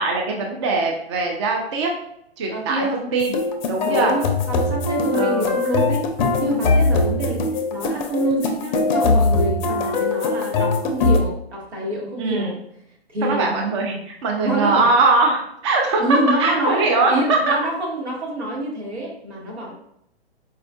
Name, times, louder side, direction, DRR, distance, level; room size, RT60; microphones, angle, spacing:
voice 1, 0.0-1.9 2.4-3.4 3.7-4.1 5.1-5.6 12.2-12.6 13.2-17.5, right 3 dB, 30° right, 1 dB, 0.3 m, -21 dB
voice 2, 2.5-3.1 3.8-6.1 6.4-7.4 7.7-12.6 13.1-13.5 14.4-14.9 16.0-19.7, right 1 dB, 85° right, -3 dB, 1.4 m, -26 dB
sound 1, 3.2-11.2, left 3 dB, 45° left, 0.5 m, -21 dB
4.2 x 2.4 x 2.2 m, 0.75 s
hypercardioid pair, 130°, 32 cm